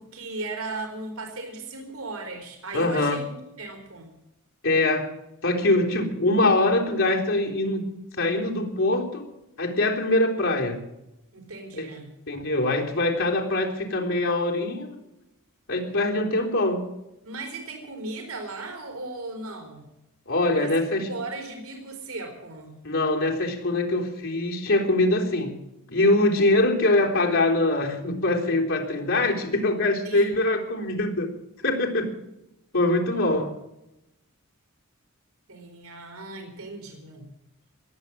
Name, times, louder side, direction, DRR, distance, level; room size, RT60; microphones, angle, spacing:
voice 1, 0.0-4.1 11.3-12.1 17.2-19.9 20.5-22.8 30.0-30.3 35.5-37.3, right 2 dB, 70° right, 3 dB, 4.3 m, -37 dB
voice 2, 2.7-3.2 4.6-5.1 5.4-7.9 8.2-9.2 9.6-10.8 11.7-11.9 12.3-15.0 15.7-16.8 20.3-21.1 22.8-25.5 25.9-31.3 31.6-32.1 32.7-33.5, left 2 dB, 60° left, 0 dB, 3.8 m, -23 dB
21.0 x 8.8 x 7.5 m, 0.89 s
head